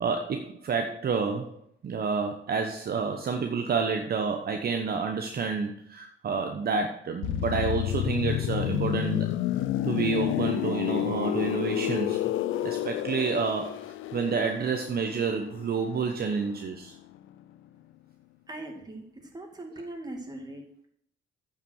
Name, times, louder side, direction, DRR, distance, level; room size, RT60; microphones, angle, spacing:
voice 1, 0.0-9.3 9.8-12.2 12.6-16.9, right 5 dB, 50° right, 5 dB, 1.0 m, -29 dB
sound 1, 7.2-16.9 17.1-17.4, left 13 dB, 80° left, 0.5 m, -30 dB
voice 2, 18.5-20.9, right 1 dB, 20° right, 2 dB, 2.4 m, -41 dB
8.9 x 5.7 x 6.4 m, 0.66 s
cardioid pair, 90°, 20 cm